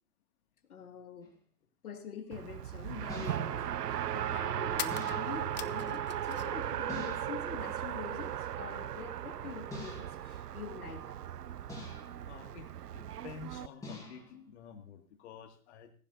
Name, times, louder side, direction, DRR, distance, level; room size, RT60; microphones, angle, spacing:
voice 1, 0.7-1.3 1.8-11.2, left 7 dB, 70° left, 5 dB, 2.2 m, -45 dB
sound 1, 1.2-1.4 3.1-3.7 4.9-5.5 6.9-7.5 9.7-10.3 11.7-12.3 13.8-14.4, left 3 dB, 5° left, 5.2 m, -46 dB
Race car auto racing, 2.3-13.7, right 11 dB, 90° right, 0.5 m, -37 dB
sound 2, 4.8-6.7 6.9-7.8, left 12 dB, 30° left, 0.5 m, -43 dB
voice 2, 12.2-15.9, left 7 dB, 45° left, 5 dB, 2.4 m, -50 dB
17.5 x 15.0 x 2.7 m, 0.43 s
hypercardioid pair, 125°, 46 cm